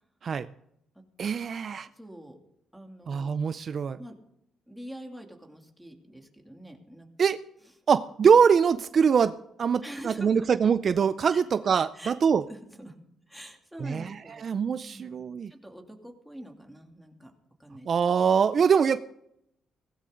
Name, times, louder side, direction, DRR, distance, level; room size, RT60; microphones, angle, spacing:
voice 1, 1.2-1.9 3.1-4.0 7.2-7.4 7.9-12.4 13.8-14.1 14.4-15.5 17.9-19.0, right 6 dB, 50° right, 14 dB, 0.5 m, -23 dB
voice 2, 1.9-2.4 2.7-3.3 4.0-4.2 4.7-7.1 9.8-10.5 11.3-11.4 11.9-12.1 12.5-12.9 13.3-14.4 14.8-15.2 15.5-17.3 17.6-17.9, right 1 dB, ahead, 2 dB, 2.7 m, -45 dB
17.5 x 15.5 x 3.9 m, 0.77 s
cardioid pair, 90°, 0 cm